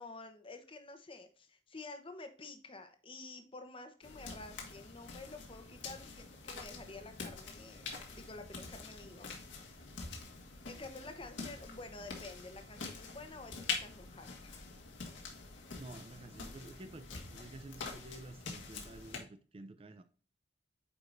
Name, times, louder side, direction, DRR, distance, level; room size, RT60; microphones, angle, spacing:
voice 1, 0.0-7.8 8.1-9.3 10.6-14.6, left 3 dB, 30° left, 1.0 m, -50 dB
sound 1, 4.0-19.2, left 4 dB, 75° left, 1.6 m, -45 dB
voice 2, 15.8-20.0, right 2 dB, 30° right, 0.5 m, -51 dB
8.6 x 4.8 x 2.5 m
head